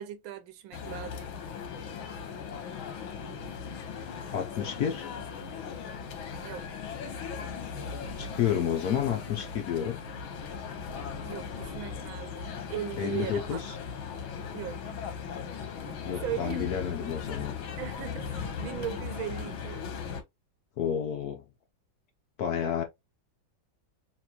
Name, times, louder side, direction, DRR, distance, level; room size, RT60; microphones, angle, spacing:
voice 1, 0.0-1.3 6.4-6.7 11.2-13.6 14.5-15.0 15.8-16.8 17.8-19.9, right 11 dB, 80° right, 1.4 m, -38 dB
sound 1, 0.7-20.2, left 6 dB, 80° left, 1.8 m, -38 dB
voice 2, 4.3-5.1 8.2-10.0 13.0-13.8 16.1-17.6 20.8-21.4 22.4-22.8, left 9 dB, 65° left, 1.0 m, -30 dB
5.9 x 2.6 x 2.8 m
omnidirectional pair, 2.2 m